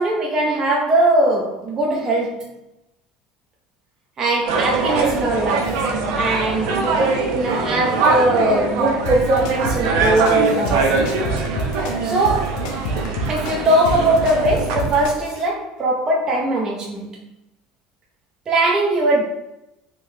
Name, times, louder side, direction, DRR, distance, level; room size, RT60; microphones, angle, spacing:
voice 1, 0.0-2.5 4.2-5.8 6.2-11.1 12.0-12.7 13.3-17.1 18.5-19.2, right 2 dB, 30° right, -2 dB, 0.5 m, -20 dB
sound 1, 4.5-15.1, right 3 dB, 80° right, 0.6 m, -23 dB
sound 2, 9.1-15.4, right 1 dB, 80° left, 0.5 m, -28 dB
3.7 x 2.8 x 2.7 m, 0.88 s
cardioid pair, 135°, 2 cm